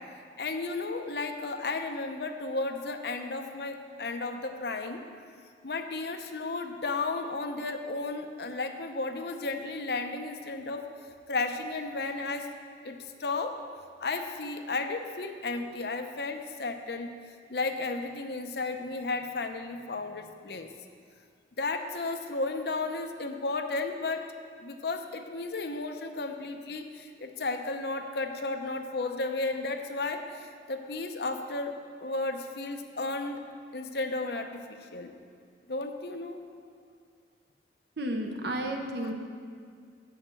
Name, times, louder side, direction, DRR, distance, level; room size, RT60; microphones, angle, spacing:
voice 1, 0.4-5.0 5.6-10.9 11.3-12.5 12.8-13.6 14.0-17.1 17.5-20.7 21.6-24.3 24.6-33.4 33.7-35.1 35.7-36.4, left 3 dB, 65° left, 6 dB, 0.7 m, -33 dB
voice 2, 38.0-39.1, right 1 dB, 70° right, 3 dB, 1.0 m, -32 dB
7.9 x 6.5 x 7.4 m, 2.1 s
head